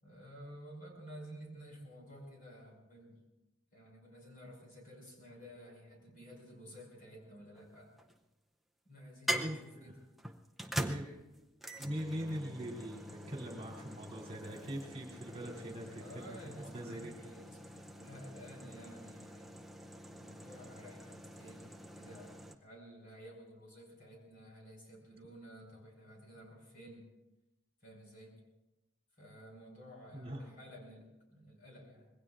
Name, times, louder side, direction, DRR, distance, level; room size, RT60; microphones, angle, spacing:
voice 1, 0.0-3.2 3.7-7.9 8.9-10.1 15.2-19.5 20.1-27.1 27.8-28.4 29.1-32.1, equal, 40° left, -1 dB, 5.7 m, -53 dB
sound 1, 7.6-8.2 9.3-22.6, right 1 dB, ahead, 0.6 m, -44 dB
voice 2, 9.3-9.9 10.8-11.1 11.8-15.9 16.1-17.1 30.1-30.4, equal, 30° right, -1 dB, 2.8 m, -42 dB
26.0 x 20.5 x 2.5 m, 0.98 s
head